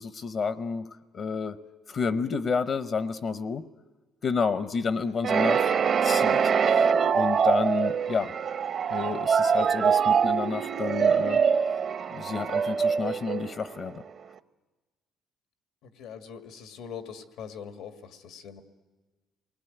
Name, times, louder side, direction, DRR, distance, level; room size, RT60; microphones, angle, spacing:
voice 1, 0.0-1.6 1.9-3.6 4.2-5.7 6.0-6.4 6.7-6.9 7.1-8.3 8.9-11.4 12.1-14.0, left 5 dB, 45° left, 12 dB, 0.7 m, -30 dB
sound 1, 5.2-14.0, right 6 dB, 50° right, 0.7 m, -24 dB
voice 2, 15.8-18.6, left 7 dB, 90° left, 7 dB, 1.8 m, -42 dB
27.5 x 20.0 x 9.3 m, 1.3 s
cardioid pair, 130°, 0 cm